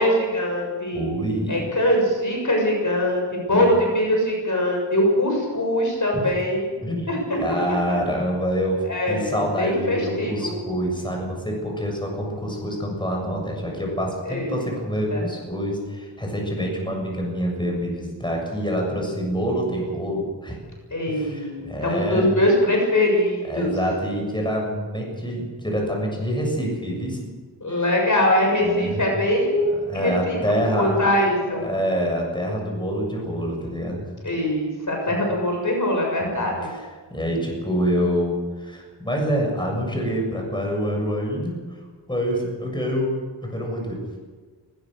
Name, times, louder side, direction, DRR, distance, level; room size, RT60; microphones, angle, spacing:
voice 1, 0.0-1.1 1.5-6.7 7.1-7.4 8.8-10.5 14.2-14.6 15.1-15.2 20.9-23.7 27.6-30.4 30.8-31.6 34.2-36.7, left 1 dB, 45° left, 0 dB, 6.8 m, -22 dB
voice 2, 0.9-1.6 3.5-3.7 6.1-6.3 6.8-7.1 7.4-20.6 21.1-22.3 23.4-27.2 27.7-27.9 28.6-29.1 29.9-31.1 31.5-34.1 36.2-36.8 37.1-41.8 42.1-43.1 43.4-44.2, equal, 10° left, 0 dB, 7.1 m, -26 dB
20.5 x 19.5 x 6.7 m, 1.4 s
wide cardioid pair, 100°, 42 cm